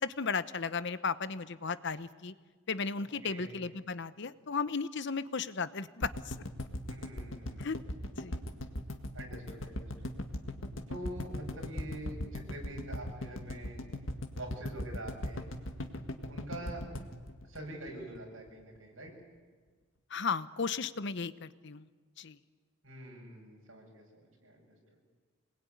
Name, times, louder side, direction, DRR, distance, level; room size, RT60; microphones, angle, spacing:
voice 1, 0.0-2.3 2.7-6.4 7.6-7.8 8.2-8.4 20.1-21.9 22.2-22.4, left 5 dB, 65° left, 15 dB, 0.9 m, -35 dB
voice 2, 3.2-3.6 6.9-7.7 9.1-10.1 10.9-13.8 14.3-15.5 16.3-16.8 17.4-19.1 22.8-25.0, right 1 dB, 85° right, 0 dB, 7.5 m, -45 dB
sound 1, 6.0-18.2 18.5-18.6 18.8-18.9, left 1 dB, 80° left, 1.9 m, -39 dB
26.5 x 20.5 x 9.6 m, 1.5 s
head